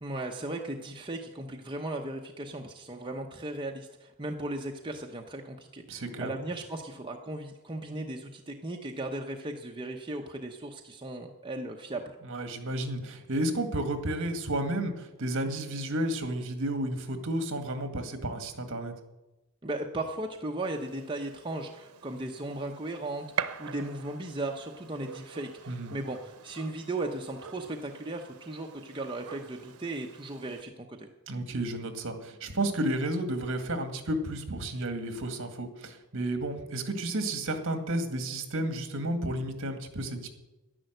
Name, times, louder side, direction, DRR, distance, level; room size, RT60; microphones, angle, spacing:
voice 1, 0.0-12.1 19.6-31.1, right 2 dB, 20° right, 1 dB, 0.9 m, -37 dB
voice 2, 5.9-6.3 12.2-18.9 25.7-26.0 31.3-40.3, right 1 dB, 60° right, 7 dB, 1.9 m, -32 dB
Gunshot gunfire, 20.6-30.6, right 7 dB, 80° right, 0.8 m, -43 dB
11.0 x 11.0 x 7.9 m, 1.0 s
head